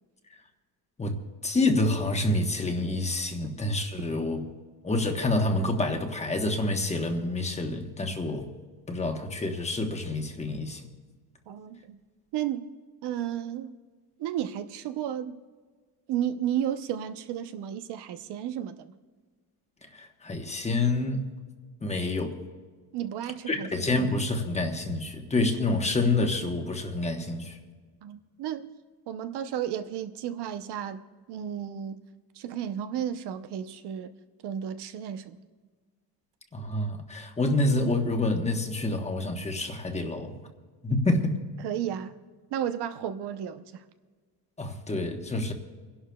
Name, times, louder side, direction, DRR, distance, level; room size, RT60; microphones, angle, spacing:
voice 1, 1.4-4.4 4.8-8.5 8.9-10.9 19.9-21.3 21.8-22.4 23.5-27.6 36.5-40.4 40.8-41.3 44.6-45.5, left 2 dB, 15° left, 1.1 m, -27 dB
voice 2, 11.5-12.0 12.3-12.7 13.0-13.8 14.2-15.4 16.1-18.9 22.9-23.9 28.0-28.7 29.1-31.0 31.3-32.0 32.4-34.1 34.4-35.4 41.6-42.2 42.5-43.8, right 10 dB, 75° right, 0.8 m, -33 dB
30.0 x 11.5 x 2.3 m
cardioid pair, 155°, 40 cm